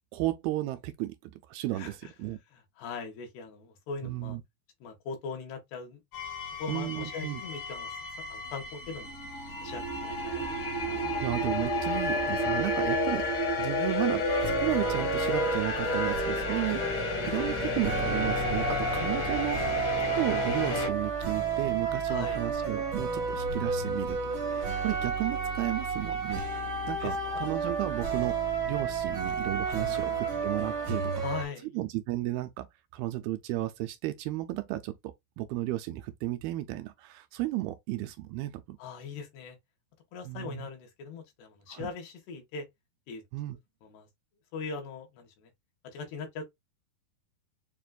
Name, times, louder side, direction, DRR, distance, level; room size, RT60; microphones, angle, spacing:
voice 1, 0.1-2.4 4.0-4.4 6.7-7.4 11.2-24.2 24.5-26.4 26.9-28.4 28.7-31.2 31.7-32.7 32.9-38.8 40.3-40.7 41.7-41.9 43.3-43.6, right 16 dB, 80° right, 2.3 m, -34 dB
voice 2, 1.7-2.1 2.5-4.4 4.8-6.0 6.6-8.0 8.3-9.1 9.6-11.0 22.1-22.5 27.0-27.4 29.8-30.2 31.2-31.8 38.8-39.6 40.1-42.7 43.1-43.2 43.8-44.1 44.5-45.5 45.8-46.4, left 5 dB, 80° left, 3.6 m, -40 dB
sound 1, 6.1-20.9, left 2 dB, 55° left, 1.5 m, -31 dB
sound 2, 14.3-31.4, right 5 dB, 65° right, 1.3 m, -32 dB
7.2 x 2.5 x 2.3 m
omnidirectional pair, 4.6 m